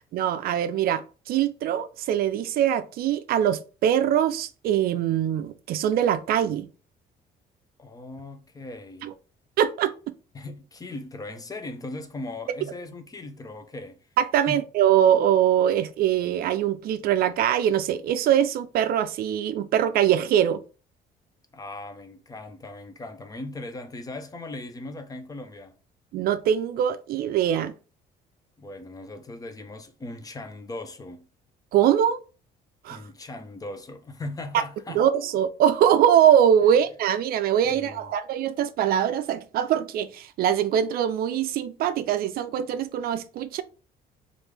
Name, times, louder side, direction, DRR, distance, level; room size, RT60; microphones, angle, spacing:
voice 1, 0.1-6.7 9.0-9.1 9.6-9.9 14.2-20.6 26.1-27.7 31.7-32.2 32.8-33.0 34.9-43.6, right 10 dB, 65° right, 0.4 m, -22 dB
voice 2, 7.8-9.1 10.3-14.0 14.5-14.6 21.5-25.7 28.6-31.3 32.9-35.0 37.6-38.1, left 2 dB, 20° left, 0.6 m, -38 dB
3.1 x 2.5 x 3.3 m
cardioid pair, 110°, 17 cm